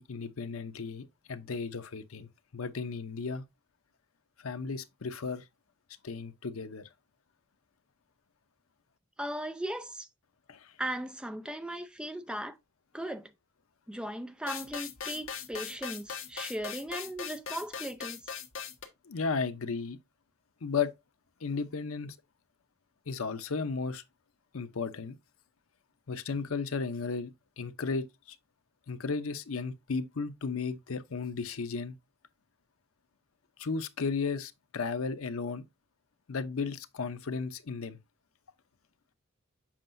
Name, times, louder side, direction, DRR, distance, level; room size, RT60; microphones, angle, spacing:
voice 1, 0.0-3.4 4.4-5.4 6.0-6.9 10.5-10.6 19.1-20.0 20.6-20.9 21.4-22.1 23.1-24.0 24.5-25.2 26.1-27.3 27.6-28.4 28.9-32.0 33.6-35.6 36.3-38.0, left 4 dB, 85° left, 0.7 m, -34 dB
voice 2, 9.2-10.1 10.8-12.5 12.9-13.3 13.9-18.2, right 1 dB, 5° right, 0.4 m, -37 dB
sound 1, 14.5-18.9, left 7 dB, 65° left, 1.2 m, -40 dB
7.3 x 5.5 x 2.6 m
head